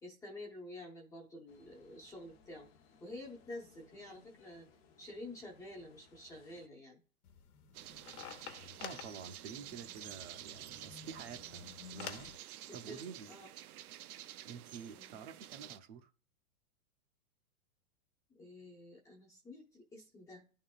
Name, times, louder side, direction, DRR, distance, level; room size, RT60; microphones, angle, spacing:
voice 1, 0.0-2.7 3.0-4.7 5.0-7.0 12.7-13.5 14.9-15.2 18.4-20.5, left 1 dB, 10° left, 0.6 m, -49 dB
sound 1, 1.5-6.7, left 5 dB, 45° left, 0.8 m, -65 dB
sound 2, 7.2-12.4, left 8 dB, 85° left, 1.1 m, -50 dB
sound 3, 7.7-15.8, right 13 dB, 80° right, 0.6 m, -50 dB
voice 2, 8.8-13.3 14.4-16.1, right 6 dB, 45° right, 0.8 m, -49 dB
11.0 x 3.7 x 2.4 m
supercardioid pair, 160°, 44 cm